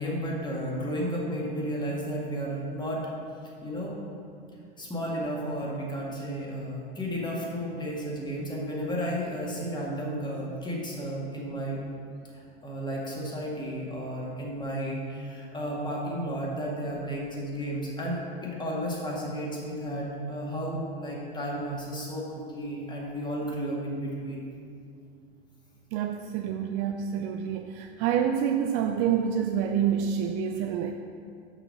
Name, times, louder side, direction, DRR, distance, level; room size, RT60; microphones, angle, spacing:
voice 1, 0.0-3.0 3.6-4.0 4.8-11.8 12.3-24.5, equal, 15° left, -3 dB, 1.8 m, -33 dB
voice 2, 25.9-30.9, right 8 dB, 40° right, 5 dB, 0.4 m, -27 dB
6.2 x 5.8 x 5.1 m, 2.4 s
figure-of-eight pair, 85°, 32 cm